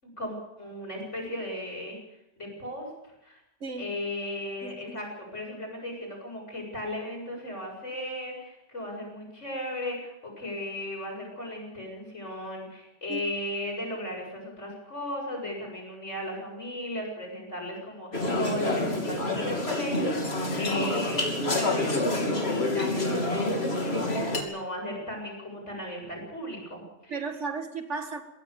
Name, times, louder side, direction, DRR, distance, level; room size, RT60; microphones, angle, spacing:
voice 1, 0.0-2.0 2.4-3.4 3.8-27.1, left 1 dB, 85° left, 8.0 m, -36 dB
voice 2, 3.6-4.0 4.6-5.0 13.1-13.2 27.1-28.2, right 4 dB, 80° right, 2.2 m, -35 dB
sound 1, 18.1-24.4, left 2 dB, 60° left, 3.3 m, -27 dB
22.5 x 17.5 x 7.0 m
omnidirectional pair, 1.2 m